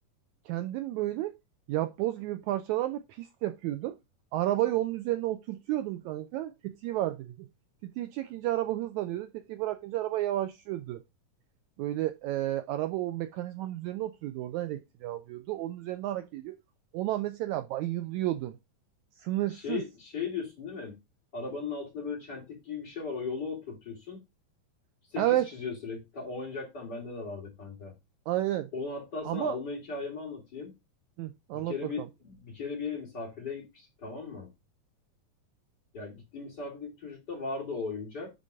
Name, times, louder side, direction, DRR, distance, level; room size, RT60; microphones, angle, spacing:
voice 1, 0.5-1.3 1.7-4.0 4.3-7.5 7.8-11.0 11.8-16.6 16.9-18.6 19.2-19.8 25.2-25.5 28.3-28.7 29.2-29.6 31.2-31.7, right 14 dB, 85° right, 1.6 m, -31 dB
voice 2, 19.5-21.0 21.3-24.2 25.1-27.9 28.7-30.7 31.5-34.5 35.9-38.3, left 4 dB, 30° left, 3.2 m, -37 dB
10.5 x 3.8 x 5.0 m
omnidirectional pair, 3.9 m